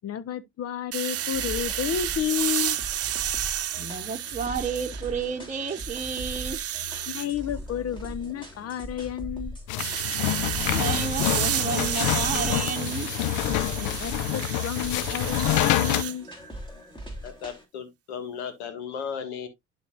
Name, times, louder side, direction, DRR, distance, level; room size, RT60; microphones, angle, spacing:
voice 1, 0.0-2.8 7.1-9.6 13.8-16.3, left 10 dB, 50° left, 1.0 m, -31 dB
sound 1, 0.9-5.2 5.6-7.3 9.8-16.2, right 12 dB, 50° right, 0.9 m, -31 dB
sound 2, 1.1-17.6, equal, 15° left, 2.9 m, -40 dB
voice 2, 3.8-6.6 10.7-13.1, right 6 dB, 25° right, 1.2 m, -31 dB
sound 3, 9.7-16.0, left 15 dB, 65° left, 0.6 m, -27 dB
voice 3, 17.2-19.5, left 7 dB, 85° left, 1.8 m, -35 dB
11.5 x 4.6 x 2.4 m
hypercardioid pair, 65°, 32 cm